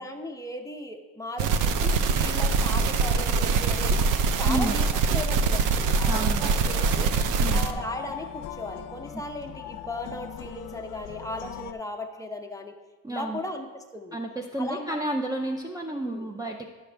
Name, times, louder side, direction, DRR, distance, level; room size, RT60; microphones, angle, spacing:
voice 1, 0.0-4.0 4.3-4.9 5.1-7.1 7.5-12.7 13.1-13.7 13.9-14.2 14.6-14.9 15.9-16.3, left 1 dB, 10° left, 3 dB, 0.8 m, -37 dB
sound 1, 1.4-7.7, right 4 dB, 80° right, 0.6 m, -23 dB
voice 2, 4.4-4.8 6.0-6.5 7.4-7.6 13.0-13.4 14.1-16.7, right 1 dB, 10° right, 3 dB, 0.5 m, -31 dB
sound 2, 6.6-11.7, left 10 dB, 80° left, 0.6 m, -40 dB
11.0 x 6.2 x 3.4 m, 1.3 s
cardioid pair, 110°, 31 cm